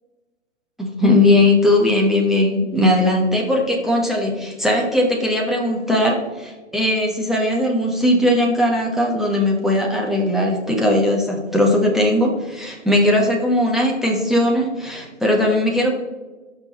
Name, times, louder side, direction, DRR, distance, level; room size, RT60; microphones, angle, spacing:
voice 1, 0.8-15.9, left 1 dB, ahead, -2 dB, 1.2 m, -18 dB
17.5 x 6.2 x 3.1 m, 1.2 s
figure-of-eight pair, 130°, 36 cm